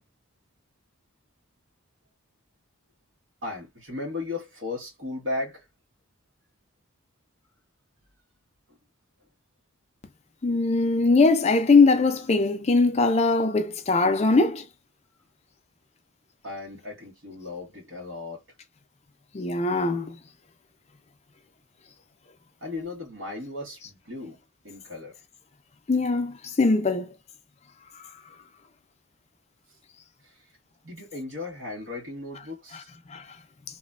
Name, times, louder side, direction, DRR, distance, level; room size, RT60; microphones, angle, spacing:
voice 1, 3.4-5.6 16.4-18.4 22.6-24.4 24.6-25.2 30.2-30.4 30.8-32.9, left 2 dB, 65° right, 1.3 m, -36 dB
voice 2, 10.4-14.6 19.3-20.2 23.8-23.9 25.9-27.1 32.7-32.8 33.1-33.3, left 3 dB, 30° left, 0.4 m, -21 dB
3.0 x 2.2 x 2.4 m
head